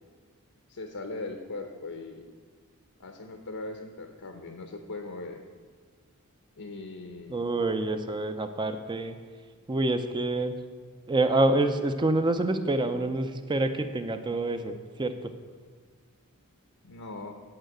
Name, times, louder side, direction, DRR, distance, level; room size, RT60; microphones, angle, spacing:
voice 1, 0.7-2.3 3.0-5.4 6.6-7.4 7.8-7.9 16.8-17.3, left 2 dB, 75° left, 4 dB, 0.8 m, -39 dB
voice 2, 7.3-9.2 9.7-10.5 11.1-15.3, right 2 dB, 20° right, 8 dB, 0.5 m, -27 dB
8.9 x 5.6 x 7.7 m, 1.5 s
head